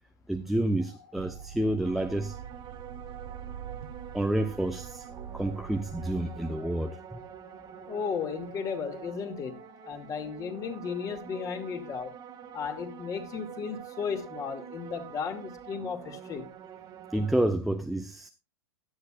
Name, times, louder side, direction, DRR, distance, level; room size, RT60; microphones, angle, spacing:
voice 1, 0.3-2.4 4.1-5.1 5.3-7.2 17.1-18.3, right 1 dB, ahead, 0.8 m, -29 dB
sound 1, 0.8-15.8, left 5 dB, 90° left, 5.8 m, -57 dB
sound 2, 1.2-6.5, right 8 dB, 65° right, 1.3 m, -44 dB
sound 3, 1.8-17.4, right 10 dB, 30° right, 1.9 m, -46 dB
voice 2, 7.9-12.1 12.5-16.5, left 6 dB, 25° left, 2.5 m, -35 dB
16.5 x 11.0 x 2.5 m
hypercardioid pair, 130°, 13 cm